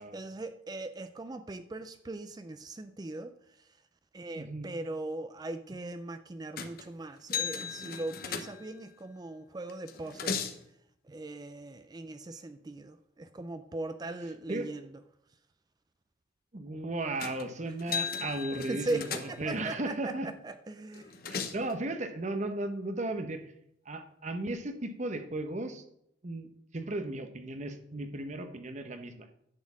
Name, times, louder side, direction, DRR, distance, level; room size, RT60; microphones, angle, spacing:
voice 1, 0.1-3.3 4.1-10.4 11.1-14.8 18.7-21.1, right 2 dB, 20° right, 10 dB, 0.4 m, -39 dB
voice 2, 4.3-4.7 12.3-12.5 14.5-14.7 16.5-20.3 21.2-23.5 23.8-25.8 26.2-29.3, right 2 dB, 40° right, 7 dB, 0.9 m, -36 dB
sound 1, 6.6-6.9 7.3-8.9 9.7-10.6 17.2-17.4 17.8-19.6 20.9-21.7, left 6 dB, 50° left, 0.9 m, -36 dB
10.5 x 4.4 x 7.2 m, 0.74 s
head